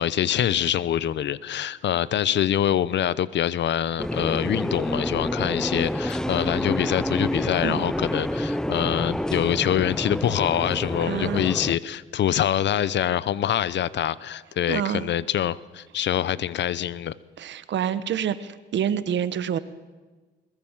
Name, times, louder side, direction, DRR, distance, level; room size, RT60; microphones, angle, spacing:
voice 1, 0.0-17.2, left 10 dB, 65° left, 19 dB, 0.8 m, -25 dB
sound 1, 4.0-11.8, equal, 5° left, 0.7 m, -28 dB
voice 2, 11.0-11.5 14.7-15.1 17.4-19.6, right 9 dB, 65° right, 15 dB, 1.3 m, -27 dB
22.0 x 20.5 x 7.3 m, 1.3 s
cardioid pair, 90°, 20 cm